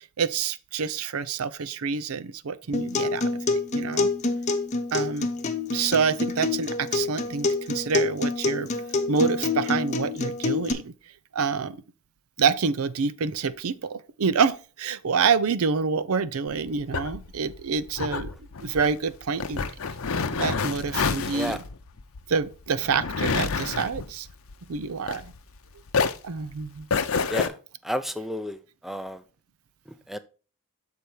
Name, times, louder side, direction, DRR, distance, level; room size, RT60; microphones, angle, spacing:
voice 1, 0.2-4.1 4.9-5.3 5.7-8.7 9.1-10.9 11.3-11.8 12.4-18.3 18.6-19.6 20.4-21.6 22.3-24.3 24.7-25.3 26.2-26.9, right 5 dB, 80° right, 0.5 m, -27 dB
Acoustic guitar, 2.7-10.7, left 3 dB, 35° left, 0.8 m, -27 dB
sound 1, 16.5-25.6 25.9-27.5, left 5 dB, 70° left, 0.7 m, -29 dB
voice 2, 21.2-21.6 27.3-27.5 27.8-29.2 30.1-30.2, equal, ahead, 0.4 m, -31 dB
6.8 x 4.9 x 4.4 m
head